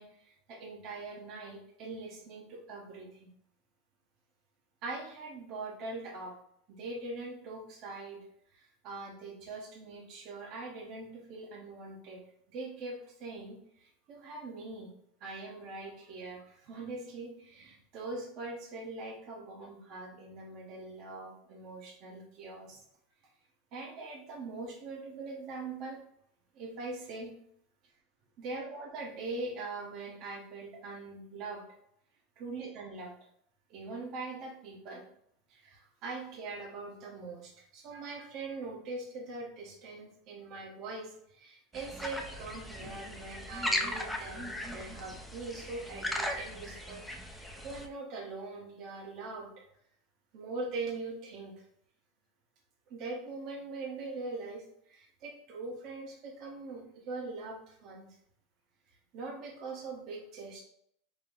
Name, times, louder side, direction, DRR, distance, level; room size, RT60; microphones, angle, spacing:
voice 1, 0.0-3.3 4.8-6.4 6.7-8.2 8.5-14.9 15.2-22.8 23.7-26.0 26.5-27.3 28.4-31.6 32.4-33.1 33.7-35.0 35.5-49.6 50.3-51.6 52.9-58.1 59.1-60.6, right 3 dB, 45° right, -1 dB, 0.9 m, -42 dB
sound 1, 41.7-47.9, left 1 dB, ahead, 0.5 m, -37 dB
5.1 x 2.0 x 3.8 m, 0.70 s
supercardioid pair, 140°, 0 cm